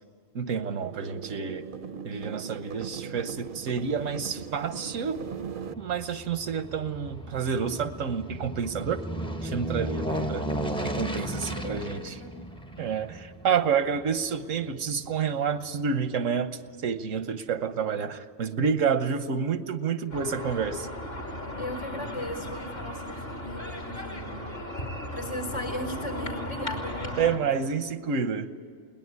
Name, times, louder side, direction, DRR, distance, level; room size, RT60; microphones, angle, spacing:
voice 1, 0.3-1.6 2.0-5.2 5.8-9.0 9.4-10.5 10.8-12.1 12.8-16.5 16.8-20.9 27.2-28.5, right 6 dB, 90° right, 11 dB, 1.4 m, -29 dB
sound 1, 0.7-5.7, right 7 dB, 50° right, 0.8 m, -39 dB
Aircraft, 3.3-15.8 16.2-16.3, equal, 5° left, 0.7 m, -36 dB
voice 2, 10.0-10.4 11.3-12.4 21.5-24.3 25.1-27.2, left 1 dB, 70° left, 4 dB, 4.6 m, -37 dB
sound 2, 20.1-27.4, equal, 50° left, 3.0 m, -36 dB
21.5 x 19.5 x 9.5 m, 2.1 s
omnidirectional pair, 1.3 m